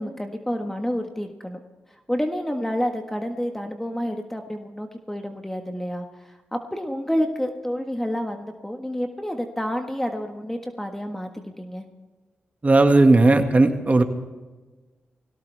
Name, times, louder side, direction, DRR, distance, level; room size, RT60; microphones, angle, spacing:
voice 1, 0.0-1.6 2.1-11.3 11.6-11.8, equal, 5° left, 4 dB, 1.5 m, -29 dB
voice 2, 12.6-14.0, right 2 dB, 35° right, 6 dB, 1.9 m, -16 dB
21.0 x 17.0 x 3.5 m, 1.3 s
supercardioid pair, 50°, 4 cm